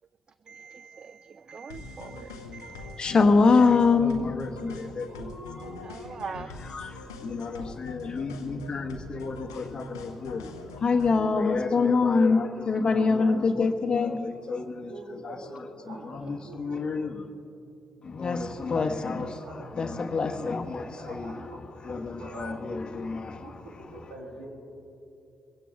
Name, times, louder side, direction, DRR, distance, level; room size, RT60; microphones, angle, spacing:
voice 1, 0.5-1.2 1.5-2.3 2.6-3.1 6.1-6.5, right 5 dB, 45° right, 14 dB, 0.4 m, -41 dB
sound 1, 1.7-11.3, left 3 dB, 90° left, 0.8 m, -43 dB
voice 2, 2.7-5.3 6.3-14.9 15.2-17.2 18.0-21.3 21.8-23.5, left 4 dB, 45° left, 8 dB, 1.3 m, -26 dB
voice 3, 4.9-5.8 14.8-16.9 19.4-19.7 20.8-21.6 22.0-22.6 23.2-24.5, right 1 dB, 75° right, -2 dB, 3.1 m, -44 dB
22.0 x 16.0 x 3.6 m, 2.7 s
hypercardioid pair, 40°, 2 cm